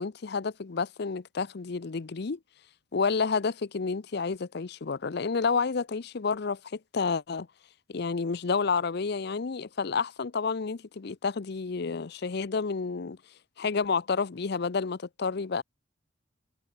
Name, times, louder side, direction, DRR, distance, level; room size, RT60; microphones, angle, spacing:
voice 1, 0.0-2.4 2.9-7.5 7.9-13.2 13.6-15.6, left 5 dB, 60° left, 0.6 m, -30 dB
head